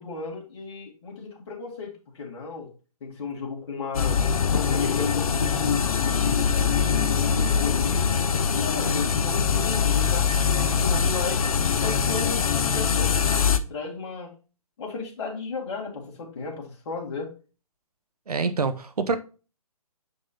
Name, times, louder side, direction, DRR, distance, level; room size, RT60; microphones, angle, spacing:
voice 1, 0.0-2.7 3.0-4.2 4.7-8.2 8.5-11.5 11.8-14.3 14.8-17.3, left 4 dB, 45° left, 2.3 m, -34 dB
sound 1, 3.9-13.6, left 6 dB, 70° left, 0.6 m, -23 dB
voice 2, 18.3-19.2, right 4 dB, 80° right, 0.8 m, -26 dB
6.6 x 5.3 x 2.8 m
figure-of-eight pair, 135°, 19 cm